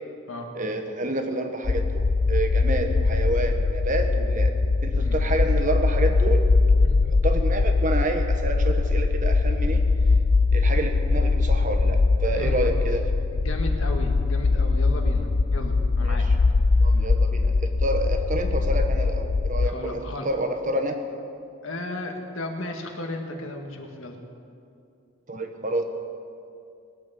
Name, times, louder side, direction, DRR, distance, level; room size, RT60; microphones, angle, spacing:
voice 1, 0.5-4.5 4.8-6.4 7.0-9.8 10.5-13.0 16.0-16.3 16.8-20.0 20.2-21.0 25.3-25.8, right 1 dB, 35° right, 5 dB, 1.2 m, -28 dB
sound 1, 1.6-19.7, left 3 dB, 45° left, 0.4 m, -22 dB
voice 2, 12.2-12.6 13.3-16.3 19.6-20.3 21.6-24.2, left 1 dB, 70° left, 3 dB, 1.8 m, -35 dB
20.0 x 8.9 x 7.0 m, 2.5 s
head